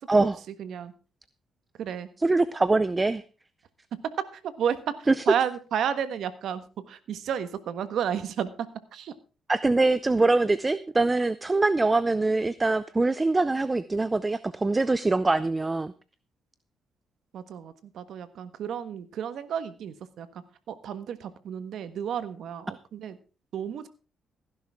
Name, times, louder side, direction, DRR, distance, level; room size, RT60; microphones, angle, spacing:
voice 1, 0.6-0.9 1.8-2.1 4.3-9.1 17.3-23.2 23.5-23.9, right 8 dB, 70° right, 13 dB, 1.4 m, -32 dB
voice 2, 2.2-3.2 5.1-5.2 9.5-15.9, right 3 dB, 20° right, 16 dB, 0.6 m, -23 dB
16.5 x 10.5 x 3.6 m, 0.34 s
cardioid pair, 90°, 0 cm